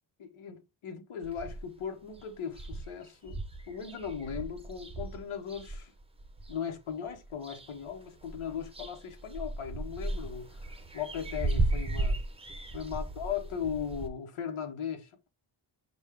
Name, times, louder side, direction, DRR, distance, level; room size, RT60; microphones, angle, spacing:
voice 1, 0.2-3.4 3.7-5.9 6.5-10.6 10.9-12.2 12.7-15.3, left 7 dB, 75° left, 1.1 m, -38 dB
sound 1, 1.2-1.8 2.2-2.3 2.5-6.6 7.1-7.9 8.2-14.1, right 2 dB, 10° right, 0.7 m, -35 dB
6.1 x 2.4 x 3.5 m
wide cardioid pair, 110°, 49 cm